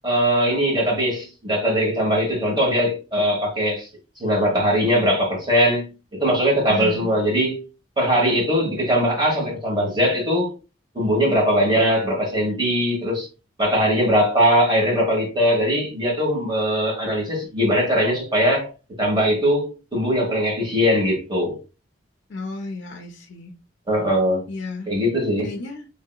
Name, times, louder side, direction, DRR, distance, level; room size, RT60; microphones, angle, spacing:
voice 1, 0.0-3.9 4.2-7.6 8.0-10.5 10.9-13.3 13.6-18.7 19.0-21.6 23.9-24.4 24.9-25.5, equal, 25° right, 1.2 m, -20 dB
voice 2, 6.7-7.1 22.3-23.5 24.5-24.9 25.4-25.9, left 3 dB, 60° left, 0.5 m, -33 dB
3.1 x 2.8 x 2.2 m
head